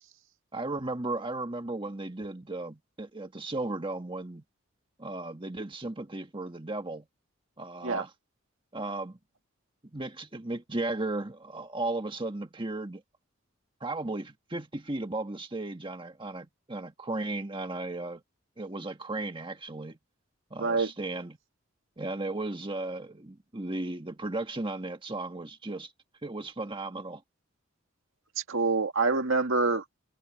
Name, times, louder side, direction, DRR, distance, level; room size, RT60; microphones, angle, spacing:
voice 1, 0.5-4.4 5.0-7.1 7.6-8.1 8.7-9.2 9.9-13.0 13.8-18.2 18.6-20.0 20.5-21.4 22.0-25.9 26.2-27.2, right 2 dB, 25° right, 1.5 m, -35 dB
voice 2, 20.6-20.9 28.4-29.8, right 3 dB, 75° right, 1.9 m, -26 dB
head